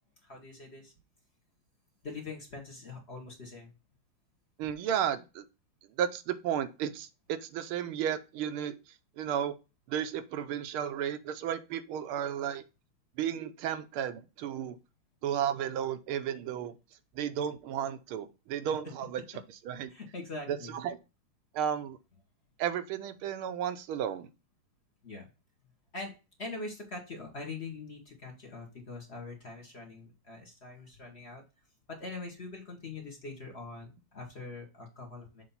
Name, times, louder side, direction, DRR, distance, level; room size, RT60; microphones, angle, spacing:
voice 1, 0.2-0.9 2.0-3.7 19.9-20.7 25.0-25.3 25.9-26.1 26.4-31.4 31.9-35.4, left 3 dB, 35° left, 2 dB, 1.3 m, -43 dB
voice 2, 4.6-5.4 6.0-8.8 9.2-9.5 9.9-12.6 13.2-14.8 15.2-16.7 17.1-19.9 20.5-21.0 21.5-22.0 22.6-24.3, right 9 dB, 80° right, 10 dB, 1.5 m, -33 dB
7.0 x 2.9 x 5.4 m, 0.29 s
omnidirectional pair, 2.3 m